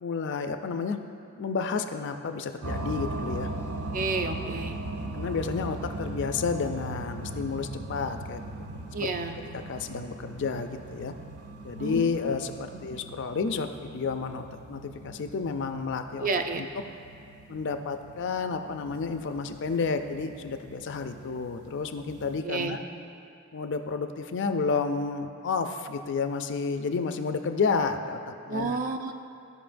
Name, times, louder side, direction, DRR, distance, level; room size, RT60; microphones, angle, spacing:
voice 1, 0.0-1.0 1.3-3.5 5.1-8.4 8.9-9.1 9.5-11.1 11.6-16.3 16.6-16.8 17.5-22.8 23.5-28.8, left 5 dB, 55° left, 8 dB, 0.4 m, -31 dB
sound 1, 2.6-22.4, right 2 dB, 85° right, 0.6 m, -39 dB
voice 2, 3.9-4.8 8.9-9.4 11.8-12.1 12.9-13.0 16.2-16.6 22.4-22.8 28.5-29.1, right 4 dB, 40° right, 5 dB, 0.4 m, -30 dB
14.5 x 5.3 x 2.6 m, 2.5 s
head